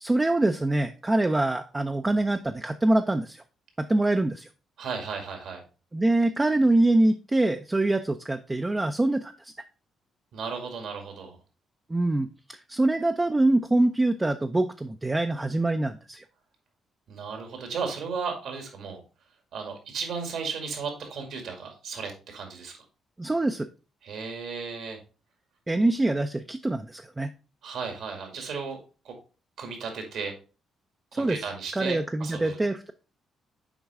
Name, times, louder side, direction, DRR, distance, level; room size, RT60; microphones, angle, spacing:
voice 1, 0.0-3.4 3.8-4.5 5.9-9.5 11.9-12.3 12.7-16.2 23.2-23.7 25.7-27.3 31.1-31.4 31.7-32.9, right 2 dB, 15° right, 6 dB, 0.5 m, -24 dB
voice 2, 4.8-5.6 10.3-11.4 17.1-19.0 19.5-22.7 24.0-25.0 27.6-28.8 29.0-29.1 29.6-30.3 31.1-32.6, right 5 dB, 70° right, 3 dB, 2.1 m, -35 dB
7.2 x 4.6 x 3.5 m, 0.34 s
cardioid pair, 90°, 0 cm